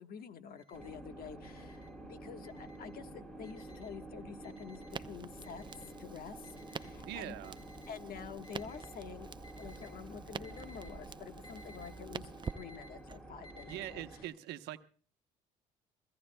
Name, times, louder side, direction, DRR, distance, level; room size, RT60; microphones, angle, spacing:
voice 1, 0.0-5.6 6.0-7.4 7.9-9.3 9.6-14.3, left 7 dB, 60° left, 8 dB, 1.3 m, -48 dB
Alarm, 0.6-0.9 1.4-1.9 2.4-2.9 3.4-3.9 4.4-4.9 5.4-5.9 6.4-6.9 7.4-7.9 8.4-8.9 9.4-9.9 10.4-10.9 11.4-11.9 12.4-12.9 13.4-13.9, left 1 dB, 30° left, 5.4 m, -58 dB
sound 1, 0.7-14.2, right 2 dB, 5° left, 2.9 m, -50 dB
Crackle, 4.9-13.2, right 5 dB, 25° right, 0.6 m, -48 dB
voice 2, 7.0-7.6 13.7-14.8, right 14 dB, 80° right, 9 dB, 0.9 m, -42 dB
27.5 x 16.5 x 2.2 m, 0.42 s
supercardioid pair, 75°, 17 cm